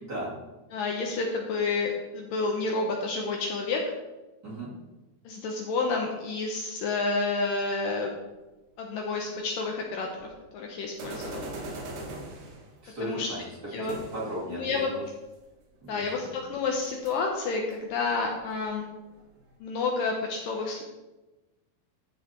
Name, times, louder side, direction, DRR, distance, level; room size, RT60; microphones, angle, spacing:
voice 1, 0.7-3.8 5.3-8.1 8.8-11.5 13.0-13.3 13.7-13.9 14.5-14.9 15.9-18.8 19.6-20.8, left 3 dB, 70° left, 1 dB, 2.3 m, -30 dB
sound 1, 10.2-10.3 11.0-12.7 13.9-14.5 16.0-16.1 16.4-16.5 16.8-17.1 17.6-19.4, right 2 dB, 60° right, 3.0 m, -40 dB
voice 2, 12.8-15.0 15.8-16.4, equal, 30° right, -7 dB, 2.4 m, -36 dB
13.5 x 5.6 x 4.4 m, 1.1 s
omnidirectional pair, 4.6 m